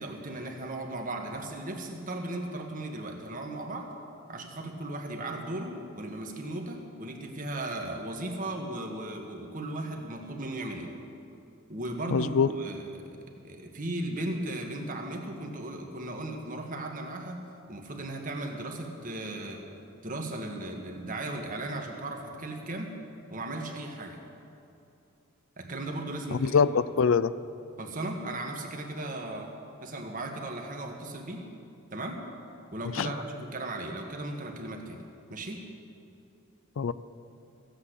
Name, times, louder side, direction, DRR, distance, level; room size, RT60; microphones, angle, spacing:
voice 1, 0.0-3.9 4.3-10.9 11.7-13.2 13.4-19.6 20.0-22.9 23.3-24.2 25.6-26.6 27.8-29.5 29.8-31.4 31.9-32.2 32.7-35.0 35.3-35.6, right 1 dB, 40° right, 2 dB, 1.6 m, -36 dB
voice 2, 12.1-12.5 26.4-27.3 33.0-33.1 36.8-36.9, left 6 dB, 65° left, 16 dB, 0.4 m, -23 dB
15.5 x 8.3 x 8.2 m, 2.7 s
head